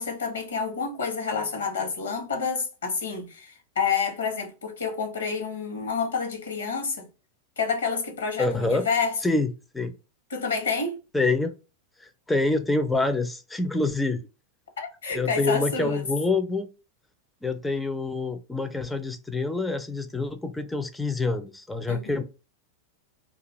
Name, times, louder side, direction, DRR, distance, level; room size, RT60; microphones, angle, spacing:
voice 1, 0.0-7.1 7.6-9.2 10.3-11.0 14.8-16.1 21.9-22.0, left 5 dB, 85° left, 0.9 m, -29 dB
voice 2, 8.4-8.9 9.2-10.0 11.1-11.6 12.0-14.2 15.1-16.7 17.4-22.2, left 3 dB, 5° left, 0.4 m, -26 dB
2.3 x 2.2 x 3.0 m
hypercardioid pair, 105°, 0 cm